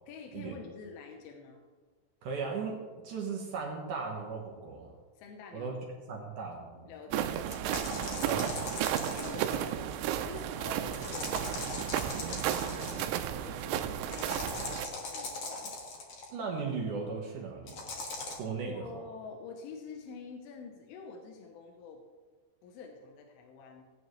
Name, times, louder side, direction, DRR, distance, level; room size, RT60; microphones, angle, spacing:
voice 1, 0.1-1.7 5.2-6.2 6.9-8.4 8.7-15.7 18.6-22.0 22.6-23.8, left 4 dB, 90° left, 3 dB, 3.5 m, -47 dB
voice 2, 2.2-4.9 5.5-5.8 6.1-7.2 8.3-8.5 16.3-17.9 18.4-18.9, right 5 dB, 70° right, 0 dB, 1.9 m, -37 dB
sound 1, 7.1-14.9, right 10 dB, 85° right, 3.1 m, -33 dB
sound 2, 7.5-9.7 10.9-13.1 14.1-16.3 17.7-18.4, left 3 dB, 70° left, 1.4 m, -40 dB
18.0 x 9.1 x 3.2 m, 1.4 s
omnidirectional pair, 5.5 m